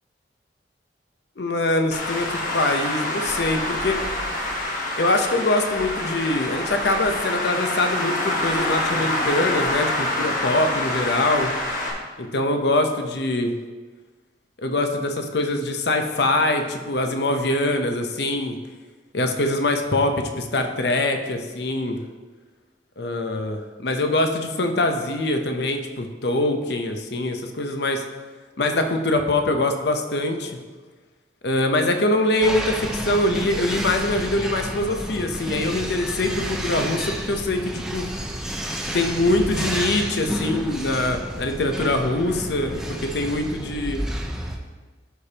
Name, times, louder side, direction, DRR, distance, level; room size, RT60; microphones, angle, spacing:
voice 1, 1.4-4.0 5.0-11.5 12.2-13.6 14.6-18.6 19.1-22.0 23.0-28.0 28.6-30.5 31.4-38.1 38.9-44.0, left 2 dB, 60° left, 5 dB, 0.7 m, -23 dB
Traffic noise roadway noise, 1.9-11.9, left 1 dB, 45° left, 1.1 m, -26 dB
sound 1, 32.4-44.6, equal, 5° right, 0.5 m, -30 dB
12.5 x 5.0 x 2.9 m, 1.3 s
head